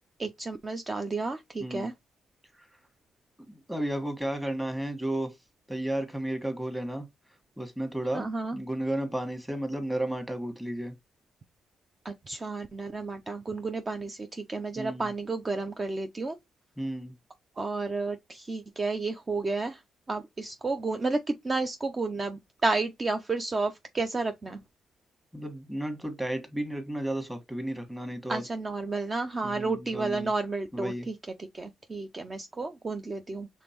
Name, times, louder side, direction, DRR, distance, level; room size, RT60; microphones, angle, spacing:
voice 1, 0.2-1.9 8.1-8.6 12.0-16.4 17.6-19.8 20.1-24.6 28.3-33.5, right 3 dB, 35° right, 0.6 m, -31 dB
voice 2, 3.5-5.3 5.7-7.0 7.6-8.3 8.5-10.9 14.8-15.1 16.8-17.1 25.3-28.4 29.4-30.3 30.7-31.1, right 1 dB, 5° right, 1.6 m, -33 dB
5.0 x 3.6 x 3.0 m
cardioid pair, 70°, 0 cm